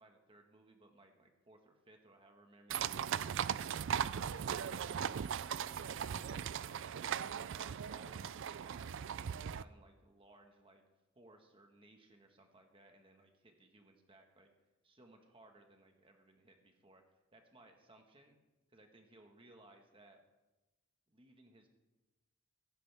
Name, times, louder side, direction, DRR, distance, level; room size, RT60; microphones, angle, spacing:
voice 1, 0.0-4.2 4.5-4.9 5.4-7.0 7.5-10.8 11.1-14.5 14.8-17.0 17.3-18.4 18.7-20.2 21.1-21.7, right 2 dB, 25° right, 4 dB, 1.5 m, -62 dB
sound 1, 2.7-9.6, right 8 dB, 55° right, 0.4 m, -38 dB
16.5 x 15.5 x 3.5 m, 1.1 s
head